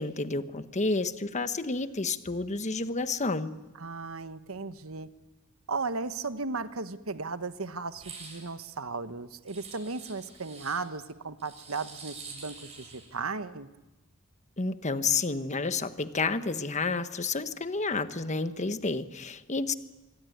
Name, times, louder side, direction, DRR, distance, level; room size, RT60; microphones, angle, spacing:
voice 1, 0.0-3.5 14.6-19.7, left 3 dB, 35° left, 10 dB, 1.3 m, -30 dB
voice 2, 3.8-5.1 5.7-13.7, right 4 dB, 85° right, 11 dB, 1.3 m, -36 dB
sound 1, 7.9-8.5 9.5-10.8 11.4-13.1, right 4 dB, 30° right, 7.9 m, -46 dB
26.5 x 23.0 x 9.4 m, 1.1 s
head